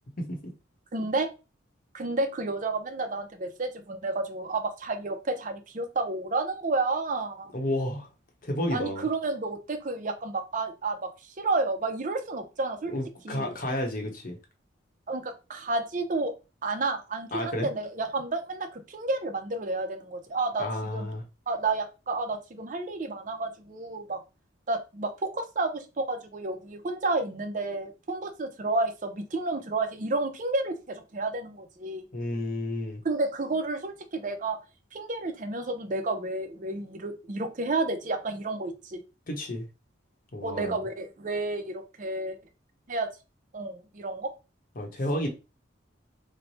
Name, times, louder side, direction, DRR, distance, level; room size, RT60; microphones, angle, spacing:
voice 1, 0.9-1.3 1.9-7.5 8.7-12.9 13.2-13.5 15.1-16.3 16.6-20.6 20.9-21.1 21.5-24.2 24.7-32.0 33.0-34.6 34.9-39.0 40.4-42.4 42.9-43.1 43.5-44.3, right 2 dB, 40° right, 0.5 m, -31 dB
voice 2, 7.5-8.1 8.4-9.1 12.9-14.4 17.3-17.7 20.6-21.2 32.1-33.0 39.3-39.7 40.3-40.8 44.8-45.3, left 1 dB, 45° left, 0.8 m, -31 dB
3.1 x 2.1 x 4.0 m
head